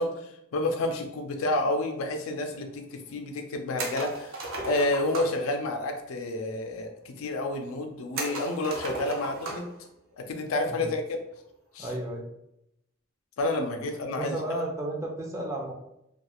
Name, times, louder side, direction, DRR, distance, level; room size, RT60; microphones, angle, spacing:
voice 1, 0.0-9.7 10.2-11.2 11.7-11.9 13.4-14.4, left 2 dB, 85° left, 5 dB, 0.4 m, -30 dB
sound 1, 3.8-5.4 8.2-9.8 10.1-10.2 11.8-12.1, right 2 dB, 70° right, 0.6 m, -35 dB
voice 2, 11.8-12.2 14.1-15.7, right 1 dB, 15° right, 0 dB, 0.4 m, -33 dB
2.3 x 2.3 x 2.9 m, 0.81 s
head